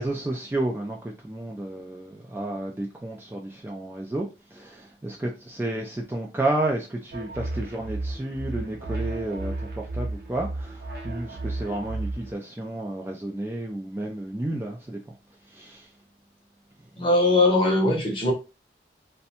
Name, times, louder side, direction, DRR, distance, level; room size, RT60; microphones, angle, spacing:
voice 1, 0.0-15.0 15.5-15.9, right 1 dB, 15° right, 0.3 m, -31 dB
sound 1, 7.1-12.3, right 2 dB, 55° right, 0.6 m, -33 dB
voice 2, 17.0-18.3, left 2 dB, 30° left, 0.7 m, -20 dB
2.5 x 2.1 x 2.8 m
head